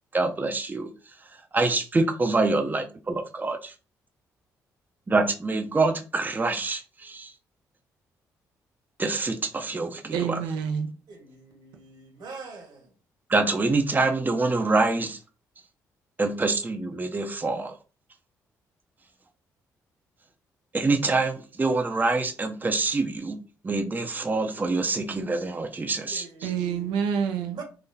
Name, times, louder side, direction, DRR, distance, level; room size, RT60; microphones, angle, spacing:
voice 1, 0.1-0.9 1.5-3.7 5.1-7.3 9.0-10.4 13.3-15.2 16.2-17.7 20.7-23.4 23.6-26.5, right 3 dB, 25° right, 0.6 m, -25 dB
voice 2, 10.1-10.9 26.4-27.6, right 7 dB, 85° right, 0.6 m, -27 dB
voice 3, 11.1-12.9 26.1-26.8 27.4-27.6, right 4 dB, 70° right, 1.4 m, -44 dB
4.0 x 2.8 x 2.7 m
supercardioid pair, 55°, 8 cm